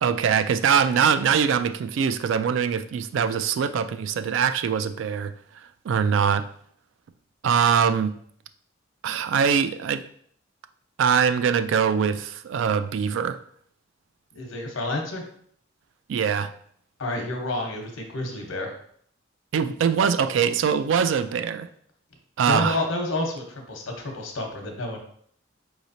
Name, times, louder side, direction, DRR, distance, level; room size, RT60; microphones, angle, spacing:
voice 1, 0.0-5.3 5.8-6.5 7.4-8.1 9.0-10.0 11.0-13.4 16.1-16.5 19.5-21.7 22.4-22.8, right 7 dB, 70° right, 10 dB, 0.3 m, -22 dB
voice 2, 14.3-15.3 17.0-18.7 22.5-25.0, left 2 dB, 85° left, 3 dB, 0.9 m, -29 dB
4.8 x 3.1 x 2.7 m, 0.62 s
head